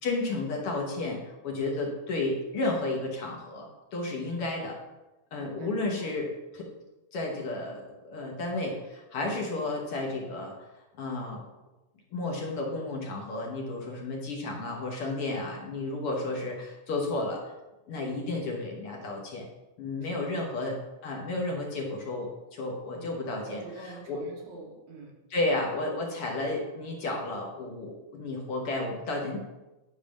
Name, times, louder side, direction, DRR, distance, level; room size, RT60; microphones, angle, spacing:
voice 1, 0.0-4.7 5.3-6.3 6.5-6.7 7.1-10.5 11.0-11.4 12.1-17.4 17.9-19.4 19.8-20.8 21.0-24.2 25.3-29.4, left 2 dB, 60° left, 0 dB, 1.8 m, -32 dB
voice 2, 4.2-4.5 5.4-6.1 20.0-20.3 22.9-25.2, right 3 dB, 85° right, -1 dB, 3.0 m, -47 dB
10.5 x 3.5 x 6.2 m, 1.0 s
omnidirectional pair, 3.3 m